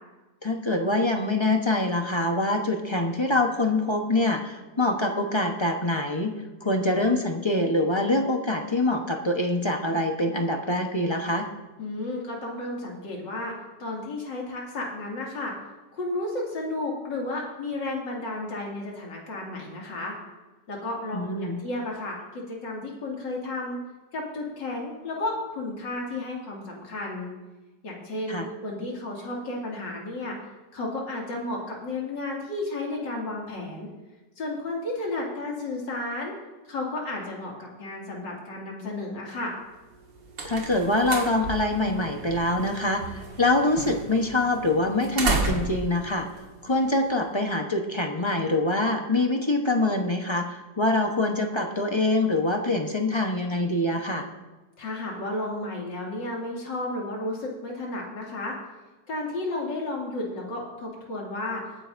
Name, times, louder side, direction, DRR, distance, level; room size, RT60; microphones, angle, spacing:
voice 1, 0.4-6.3 6.6-11.5 21.1-21.6 28.3-28.5 40.4-46.3 46.6-54.3, left 2 dB, 25° left, 3 dB, 0.7 m, -25 dB
voice 2, 11.8-13.5 13.8-15.5 15.9-20.1 20.7-23.8 24.1-27.3 27.8-30.4 30.7-33.9 34.4-36.3 36.7-39.5 54.8-58.5 59.1-61.6, left 2 dB, 80° left, -2 dB, 3.1 m, -32 dB
sound 1, 39.9-47.3, right 3 dB, 85° right, 2.3 m, -33 dB
21.5 x 9.5 x 2.6 m, 1.2 s
omnidirectional pair, 1.9 m